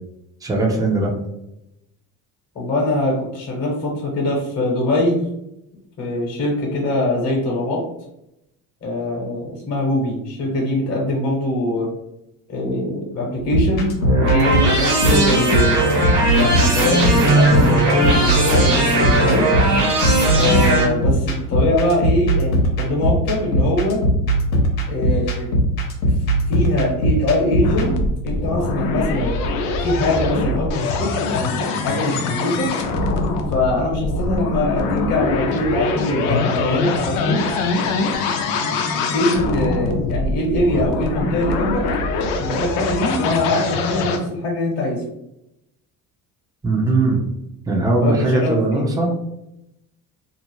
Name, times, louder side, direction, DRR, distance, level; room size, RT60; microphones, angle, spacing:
voice 1, 0.4-1.1 46.6-47.2 47.7-49.1, right 2 dB, 10° right, -1 dB, 0.6 m, -19 dB
voice 2, 2.5-5.2 6.0-7.8 8.8-11.9 12.5-13.9 14.2-15.8 16.3-19.5 20.3-24.0 24.9-25.5 26.0-26.1 26.5-27.9 28.2-29.3 29.8-32.7 33.5-37.4 39.1-41.8 42.4-45.0 48.0-48.9, left 1 dB, 40° left, -2 dB, 1.0 m, -22 dB
sound 1, 13.4-27.9, right 1 dB, 70° left, 0.9 m, -20 dB
sound 2, 14.0-20.8, right 1 dB, 65° right, 1.3 m, -18 dB
sound 3, 27.6-44.2, left 3 dB, 85° left, 0.6 m, -23 dB
2.6 x 2.0 x 3.0 m, 0.83 s
supercardioid pair, 95°, 40 cm